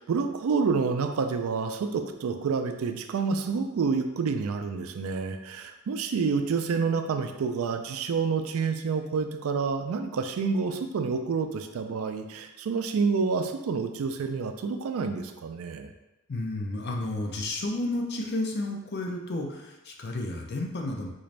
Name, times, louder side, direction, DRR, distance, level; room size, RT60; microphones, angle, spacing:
voice 1, 0.0-15.9, right 5 dB, 80° right, 7 dB, 0.4 m, -28 dB
voice 2, 16.3-21.1, left 2 dB, 50° left, 2 dB, 0.5 m, -31 dB
3.8 x 2.5 x 3.2 m, 0.98 s
head